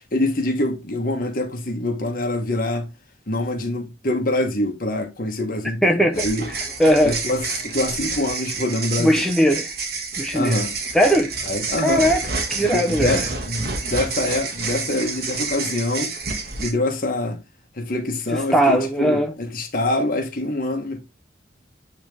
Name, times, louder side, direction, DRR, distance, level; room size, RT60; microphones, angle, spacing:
voice 1, 0.0-2.9 3.3-6.5 7.0-9.3 10.3-10.7 11.5-12.0 12.6-16.1 16.6-17.4 17.8-21.0, left 1 dB, 50° left, 1.5 m, -25 dB
voice 2, 5.8-7.2 9.0-9.7 10.2-10.6 10.9-11.3 11.8-12.2 12.5-13.3 18.5-19.3, equal, ahead, 0.8 m, -19 dB
sound 1, 6.1-16.7, right 4 dB, 55° right, 1.6 m, -29 dB
8.7 x 3.6 x 3.4 m
head